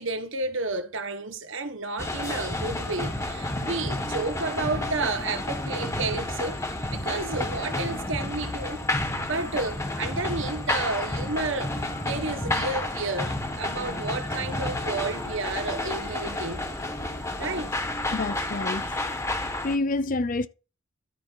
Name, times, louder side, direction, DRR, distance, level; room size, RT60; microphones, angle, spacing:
voice 1, 0.0-8.8 9.2-16.7 17.4-18.0, right 3 dB, 60° right, 1.5 m, -31 dB
sound 1, 2.0-19.8, left 1 dB, 15° left, 1.2 m, -30 dB
voice 2, 18.1-19.0 19.6-20.5, left 2 dB, 40° left, 0.6 m, -28 dB
13.0 x 5.1 x 4.7 m
head